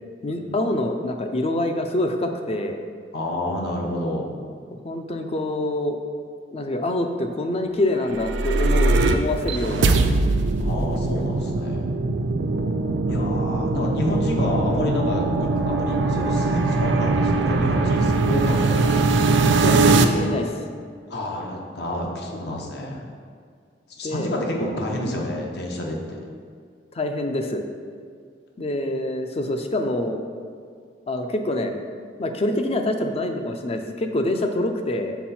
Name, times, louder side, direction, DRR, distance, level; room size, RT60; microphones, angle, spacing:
voice 1, 0.2-2.8 4.8-6.0 6.5-9.9 13.3-13.7 19.6-20.6 23.0-23.1 24.0-24.3 26.9-27.6 28.6-30.2 31.1-31.7 32.2-35.2, left 1 dB, 35° left, 5 dB, 0.5 m, -26 dB
voice 2, 3.1-4.3 10.6-11.9 13.0-15.2 15.6-19.0 21.1-23.0 24.0-26.2, left 1 dB, 65° left, 0 dB, 0.9 m, -29 dB
sound 1, 8.0-20.1, right 3 dB, 85° right, 0.4 m, -21 dB
5.9 x 4.6 x 4.3 m, 2.1 s
head